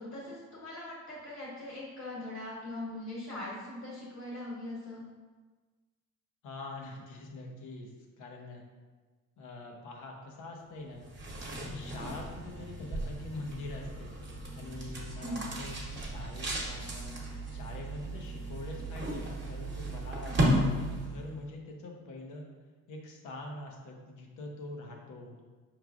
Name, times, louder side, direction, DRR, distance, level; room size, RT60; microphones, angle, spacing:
voice 1, 0.0-5.0 12.0-12.1 15.2-15.4 20.2-20.4, left 1 dB, 60° left, -6 dB, 1.2 m, -41 dB
voice 2, 6.4-7.9 8.2-8.6 9.4-11.1 11.6-14.1 14.5-17.2 17.5-22.5 22.9-25.4, left 2 dB, 85° left, 0 dB, 0.7 m, -44 dB
sound 1, 11.0-21.3, right 1 dB, 35° right, 0.9 m, -35 dB
4.9 x 3.1 x 2.3 m, 1.3 s
cardioid pair, 90°, 30 cm